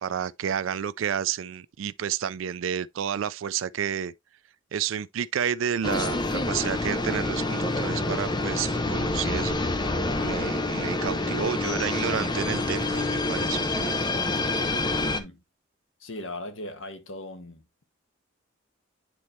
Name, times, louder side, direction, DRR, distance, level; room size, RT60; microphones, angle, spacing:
voice 1, 0.0-4.1 4.7-9.6 10.2-14.0, right 8 dB, 80° right, 0.4 m, -30 dB
sound 1, 5.8-15.2, left 2 dB, 20° left, 0.7 m, -27 dB
voice 2, 14.9-15.4 16.0-17.8, left 1 dB, 75° left, 1.4 m, -39 dB
9.7 x 4.2 x 3.0 m
head